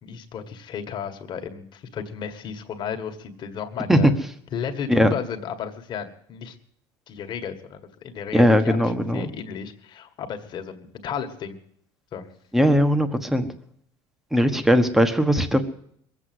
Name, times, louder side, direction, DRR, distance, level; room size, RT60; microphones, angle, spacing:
voice 1, 0.0-4.1 4.5-6.6 7.1-11.6 12.1-12.3 14.4-14.7, left 7 dB, 40° left, 6 dB, 1.9 m, -34 dB
voice 2, 8.3-9.3 12.5-13.5 14.3-15.6, equal, 5° right, 8 dB, 1.4 m, -19 dB
21.5 x 8.3 x 7.9 m, 0.67 s
cardioid pair, 130°, 12 cm